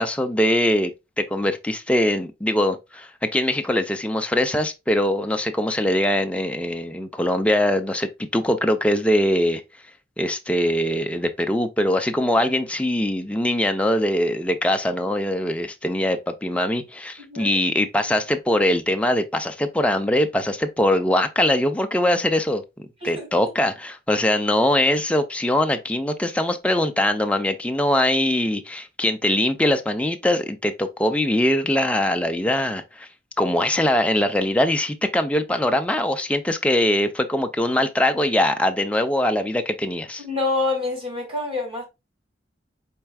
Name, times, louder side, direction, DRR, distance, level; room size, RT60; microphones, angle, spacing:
voice 1, 0.0-9.6 10.2-22.6 23.0-33.1 33.4-40.2, left 1 dB, 5° left, 0.6 m, -22 dB
voice 2, 40.2-41.8, left 3 dB, 35° right, 2.6 m, -26 dB
4.5 x 4.5 x 2.3 m
head